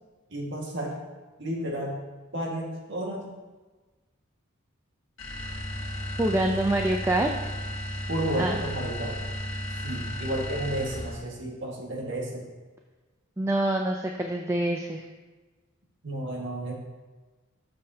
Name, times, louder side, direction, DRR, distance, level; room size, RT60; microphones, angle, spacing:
voice 1, 0.3-1.0 1.4-2.0 2.3-3.3 8.1-9.2 9.8-12.5 16.0-16.8, right 1 dB, 60° right, -1 dB, 1.7 m, -32 dB
sound 1, 5.2-11.3, equal, 70° left, 1.4 m, -34 dB
voice 2, 6.2-7.3 8.4-8.6 13.4-15.0, right 1 dB, 15° right, 2 dB, 0.4 m, -25 dB
13.0 x 6.6 x 2.8 m, 1.3 s
head